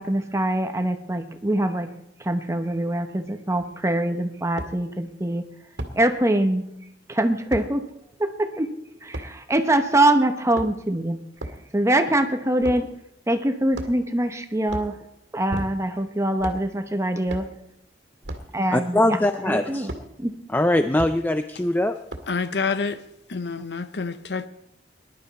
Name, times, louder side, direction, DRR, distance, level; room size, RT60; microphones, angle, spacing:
voice 1, 0.0-1.9 2.2-5.4 6.0-6.6 7.1-7.8 8.2-8.7 9.0-11.2 11.7-12.9 13.3-14.9 15.3-17.4 18.5-19.9 20.2-20.3, right 1 dB, 15° right, 0.9 m, -23 dB
sound 1, 3.6-3.7 4.6-4.7 5.8-6.0 7.5-7.7 9.1-9.3 10.4-10.9 11.4-11.6 12.6-12.9 13.7-14.1 14.6-14.9 15.5-16.0 16.4-16.7 17.3-17.5 18.2-18.5 19.9-20.1 21.0-21.2 22.1-22.4, right 1 dB, 70° right, 2.0 m, -33 dB
voice 2, 18.7-19.9 20.5-22.0, left 1 dB, 10° left, 0.4 m, -22 dB
voice 3, 22.3-23.0 23.3-24.5, left 4 dB, 65° left, 0.8 m, -27 dB
20.5 x 11.5 x 4.1 m
head